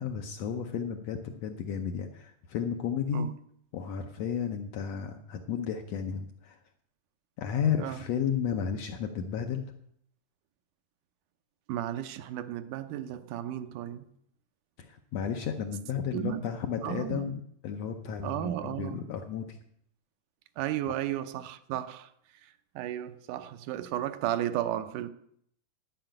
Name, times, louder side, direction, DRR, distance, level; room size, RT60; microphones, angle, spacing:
voice 1, 0.0-3.3 3.7-6.6 7.4-9.7 14.8-19.6, left 7 dB, 70° left, 1.6 m, -33 dB
voice 2, 11.7-14.1 16.1-16.5 16.8-17.4 18.2-19.0 20.6-22.1 22.4-25.1, right 12 dB, 80° right, 2.1 m, -34 dB
11.5 x 5.6 x 9.0 m
omnidirectional pair, 3.7 m